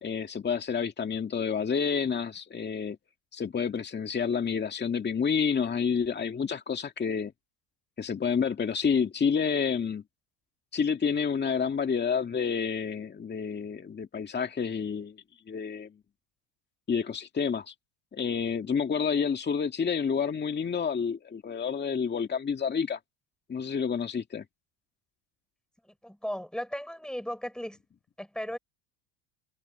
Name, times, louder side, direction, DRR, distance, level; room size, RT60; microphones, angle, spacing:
voice 1, 0.0-3.0 3.3-7.3 8.0-10.0 10.7-15.2 15.5-15.9 16.9-17.7 18.1-23.0 23.5-24.4, left 6 dB, 20° left, 2.0 m, -29 dB
voice 2, 26.0-27.8 28.2-28.6, equal, ahead, 7.1 m, -36 dB
supercardioid pair, 120°, 47 cm